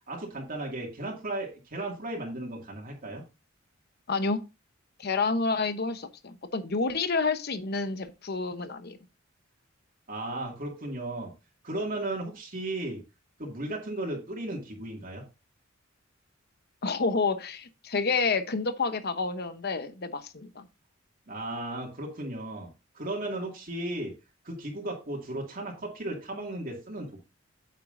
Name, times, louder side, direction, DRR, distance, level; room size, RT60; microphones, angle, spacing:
voice 1, 0.1-3.2 10.1-11.3 11.6-13.0 13.4-15.2 21.3-24.1 24.4-27.2, right 1 dB, 45° right, 2.2 m, -35 dB
voice 2, 4.1-4.4 5.0-9.0 16.8-20.7, left 4 dB, 50° left, 0.9 m, -29 dB
9.1 x 7.9 x 2.6 m
head